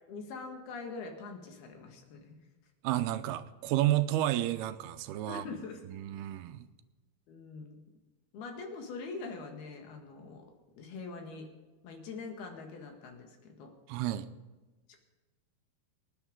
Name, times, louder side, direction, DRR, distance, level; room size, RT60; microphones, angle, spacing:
voice 1, 0.1-2.4 5.3-5.9 7.3-7.8 8.3-10.5 10.8-11.5 11.8-13.7, left 4 dB, 75° left, 3 dB, 3.7 m, -43 dB
voice 2, 2.8-5.4 5.9-6.7 13.9-14.3, right 14 dB, 85° right, 11 dB, 2.7 m, -31 dB
24.5 x 10.0 x 3.8 m, 1.2 s
omnidirectional pair, 4.5 m